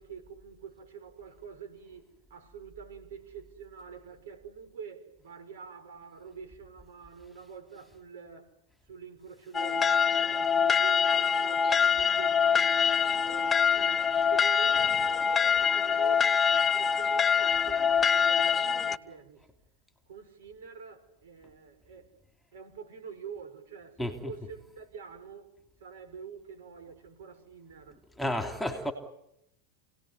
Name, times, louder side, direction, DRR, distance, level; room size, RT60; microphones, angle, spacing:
voice 1, 0.0-8.5 8.9-19.5 20.1-22.1 22.5-25.5 25.8-28.0, right 6 dB, 85° right, 5.9 m, -46 dB
sound 1, 9.5-19.0, left 6 dB, 20° left, 0.9 m, -25 dB
voice 2, 24.0-24.3 28.2-28.9, left 1 dB, ahead, 3.2 m, -31 dB
28.5 x 18.5 x 9.7 m
supercardioid pair, 135°, 0 cm